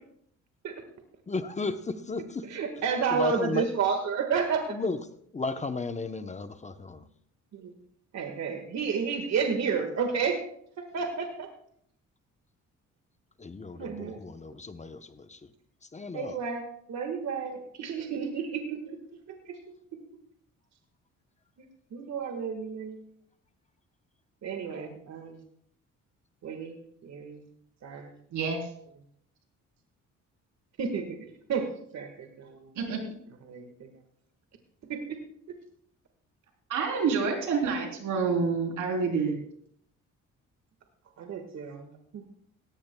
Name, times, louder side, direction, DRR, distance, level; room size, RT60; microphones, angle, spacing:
voice 1, 1.3-2.4 3.1-3.7 4.7-5.0 5.3-7.1 13.4-15.5 15.8-16.4, left 3 dB, 25° left, 9 dB, 0.8 m, -34 dB
voice 2, 2.5-4.8 7.5-7.7 8.1-10.4 10.9-11.5 13.7-14.2 16.1-16.6 16.9-19.0 19.3-19.6 19.9-20.0 21.9-23.0 24.4-25.4 26.4-27.4 27.8-28.1 30.8-31.7 31.9-32.7 33.5-33.9 34.9-35.2 41.2-42.3, right 6 dB, 60° right, 5 dB, 1.7 m, -31 dB
voice 3, 28.3-28.7 32.8-33.0 36.7-39.4, right 5 dB, 80° right, 2 dB, 3.6 m, -28 dB
17.5 x 15.0 x 2.3 m, 0.66 s
cardioid pair, 90°, 30 cm